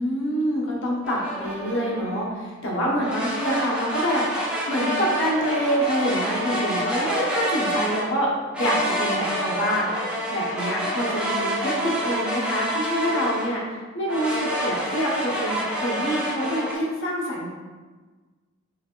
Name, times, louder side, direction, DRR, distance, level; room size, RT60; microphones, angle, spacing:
voice 1, 0.0-4.2 4.7-13.6 13.9-17.5, equal, 60° left, -4 dB, 1.1 m, -26 dB
sound 1, 1.0-2.2 3.0-8.1 8.5-13.6 14.1-16.7, equal, 5° right, 0.8 m, -28 dB
5.8 x 3.4 x 2.5 m, 1.4 s
head